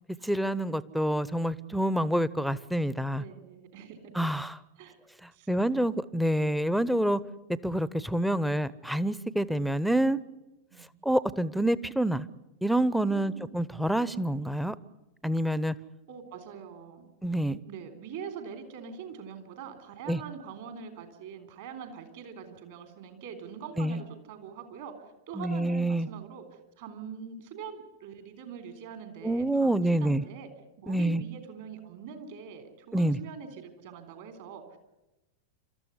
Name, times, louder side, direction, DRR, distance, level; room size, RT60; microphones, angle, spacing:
voice 1, 0.2-3.2 4.2-4.6 5.5-7.2 7.6-10.2 11.0-12.3 12.6-14.7 15.2-15.7 17.2-17.6 20.1-20.2 23.8-24.0 25.4-26.1 29.2-30.2 30.9-31.2 32.9-33.2, right 1 dB, ahead, 18 dB, 0.8 m, -27 dB
voice 2, 3.1-4.1 4.8-5.0 5.3-5.8 10.7-10.9 13.1-13.5 16.1-17.1 17.6-24.9 25.3-30.5 30.8-34.8, right 6 dB, 55° right, 8 dB, 3.7 m, -43 dB
28.5 x 13.5 x 9.7 m, 0.99 s
figure-of-eight pair, 90°, 0 cm